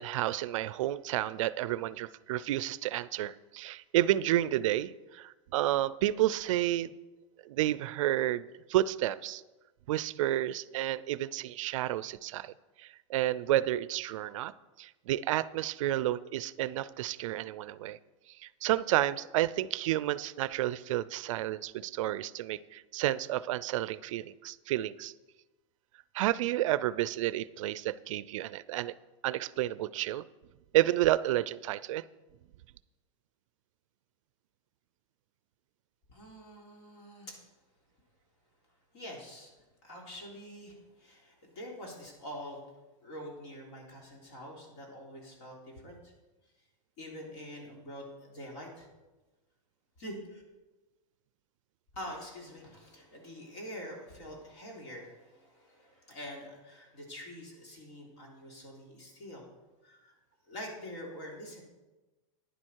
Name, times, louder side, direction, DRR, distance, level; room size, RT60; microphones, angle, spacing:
voice 1, 0.0-7.0 7.5-9.4 9.9-12.5 12.8-14.5 14.8-18.0 18.4-25.1 26.1-28.9 29.2-30.3 30.7-32.0, right 14 dB, 65° right, 18 dB, 0.4 m, -30 dB
voice 2, 36.1-37.4 38.9-39.5 39.8-42.6 43.0-46.1 47.0-48.9 50.0-50.4 51.9-59.4 59.8-60.1 60.5-61.6, equal, 55° left, -1 dB, 3.5 m, -45 dB
11.0 x 10.5 x 4.5 m, 1.1 s
supercardioid pair, 175°, 18 cm